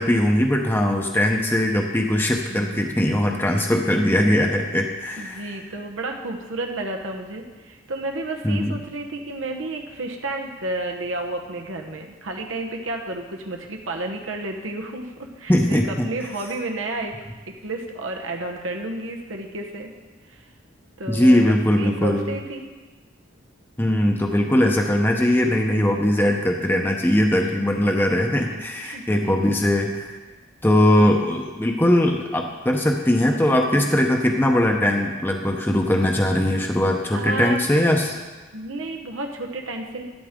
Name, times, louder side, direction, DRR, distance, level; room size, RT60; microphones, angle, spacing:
voice 1, 0.0-5.6 8.4-8.7 15.5-16.1 21.1-22.3 23.8-30.2 30.6-38.1, left 1 dB, 10° left, 2 dB, 0.8 m, -20 dB
voice 2, 2.5-3.1 5.2-17.1 17.5-19.9 20.3-20.4 21.0-22.7 25.9-26.2 27.3-27.7 28.8-29.6 37.1-37.6 38.5-40.0, right 2 dB, 80° right, 2 dB, 1.1 m, -32 dB
13.0 x 11.5 x 3.7 m, 1.3 s
head